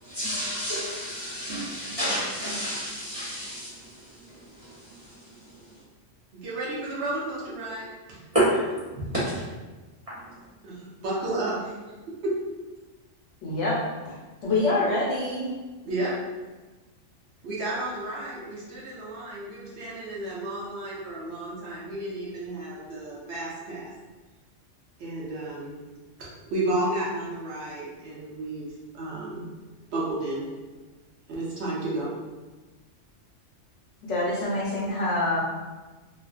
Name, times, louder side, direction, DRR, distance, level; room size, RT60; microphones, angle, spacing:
voice 1, 0.0-4.0 4.3-4.7 8.3-8.6 8.9-9.1, right 1 dB, 40° right, -11 dB, 0.6 m, -29 dB
voice 2, 6.3-8.2 10.6-11.7 12.1-12.4 15.8-16.1 17.4-23.9 25.0-25.8 26.2-28.7 28.9-29.5 29.9-30.5 31.3-32.1, right 2 dB, 65° right, -6 dB, 0.8 m, -32 dB
voice 3, 13.4-13.8 14.0-14.2 14.4-15.5 34.0-35.4, left 2 dB, 75° left, -5 dB, 0.9 m, -26 dB
2.4 x 2.2 x 2.3 m, 1.2 s
omnidirectional pair, 1.3 m